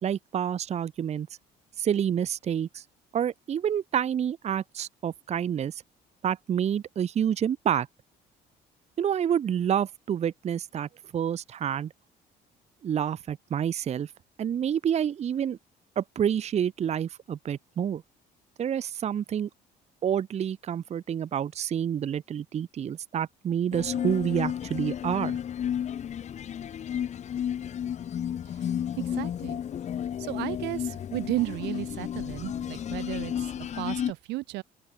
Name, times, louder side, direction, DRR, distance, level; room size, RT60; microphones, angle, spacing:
voice 1, 0.0-1.3 1.8-2.8 3.1-5.8 6.2-7.9 9.0-11.9 12.8-14.1 14.4-15.6 16.0-18.0 18.6-19.5 20.0-25.4, right 9 dB, 40° right, 0.8 m, -28 dB
sound 1, 23.7-34.1, left 9 dB, 45° left, 0.9 m, -32 dB
voice 2, 29.0-29.6 30.2-34.6, right 20 dB, 85° right, 1.5 m, -34 dB
open air
cardioid pair, 110°, 17 cm